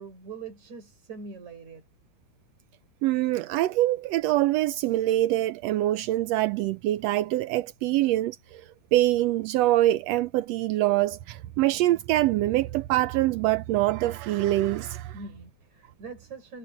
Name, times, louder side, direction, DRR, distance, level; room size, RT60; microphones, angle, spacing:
voice 1, 0.0-1.8 15.1-16.6, right 4 dB, 65° right, 7.1 m, -42 dB
voice 2, 3.0-8.6 8.9-15.1, right 15 dB, 80° right, 1.5 m, -24 dB
omnidirectional pair, 3.5 m